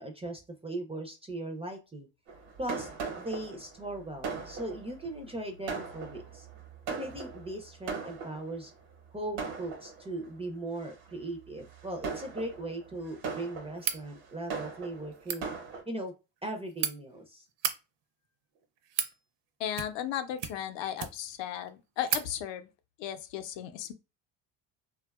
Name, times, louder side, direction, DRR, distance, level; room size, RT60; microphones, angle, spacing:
voice 1, 0.0-2.1 2.6-6.5 6.9-8.7 9.1-15.5 15.9-16.1 16.4-17.5, right 1 dB, 15° right, 0.4 m, -38 dB
Fireworks, 2.3-8.7 9.4-10.3 10.8-11.1 11.7-15.8, right 5 dB, 80° right, 1.0 m, -40 dB
sound 1, 13.8-14.0 15.1-15.4 16.4-16.9 17.5-17.8 18.5-19.1 19.7-20.1 20.4-21.3 21.7-21.8 22.1-22.3, right 9 dB, 60° right, 0.6 m, -33 dB
voice 2, 19.6-22.7 23.0-23.9, left 10 dB, 65° left, 0.6 m, -35 dB
2.6 x 2.3 x 2.3 m
supercardioid pair, 80°, 48 cm